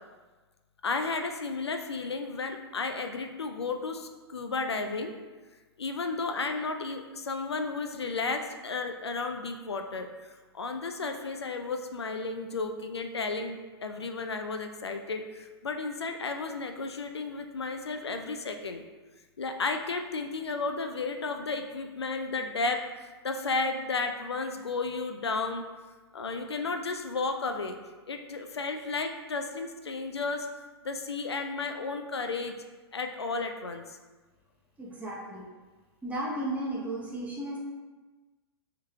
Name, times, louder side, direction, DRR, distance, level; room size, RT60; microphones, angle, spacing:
voice 1, 0.8-5.1 5.8-18.8 19.4-25.6 26.1-27.8 28.1-30.5 30.8-32.5 32.9-34.0, left 3 dB, 85° left, 5 dB, 0.4 m, -33 dB
voice 2, 34.8-35.5 36.0-37.6, right 1 dB, 10° right, -4 dB, 0.9 m, -34 dB
3.5 x 3.1 x 3.5 m, 1.3 s
figure-of-eight pair, 100°, 13 cm